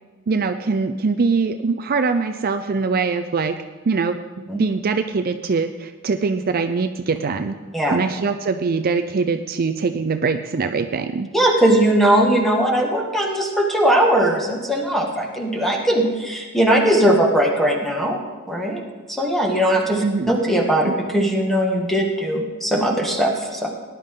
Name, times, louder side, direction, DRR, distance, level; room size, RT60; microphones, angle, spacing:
voice 1, 0.3-3.6 3.9-7.5 7.9-11.3 20.0-20.5 20.8-20.9, right 4 dB, 45° right, 7 dB, 0.5 m, -22 dB
voice 2, 11.3-18.2 18.5-18.8 19.1-23.7, right 1 dB, ahead, 0 dB, 1.8 m, -19 dB
18.5 x 11.0 x 3.8 m, 1.4 s
head